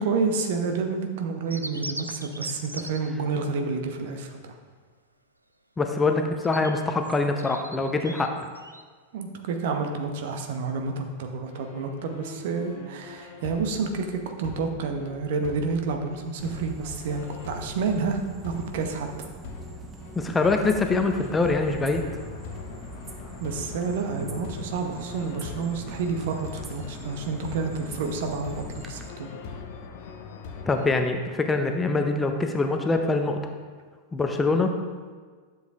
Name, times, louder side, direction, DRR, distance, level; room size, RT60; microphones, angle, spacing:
voice 1, 0.0-4.5 9.1-19.1 23.4-29.3, right 4 dB, 55° right, 5 dB, 0.9 m, -29 dB
sound 1, 1.5-3.1 6.2-8.9, right 1 dB, 85° right, 0.4 m, -39 dB
voice 2, 5.8-8.3 20.2-22.0 30.7-33.4 34.1-34.7, left 3 dB, 15° left, 5 dB, 0.6 m, -24 dB
sound 2, 11.5-30.9, left 5 dB, 50° left, 0.8 m, -42 dB
sound 3, 16.4-29.1, right 3 dB, 20° right, 0.7 m, -43 dB
11.5 x 7.2 x 2.5 m, 1.5 s
figure-of-eight pair, 90°, 0 cm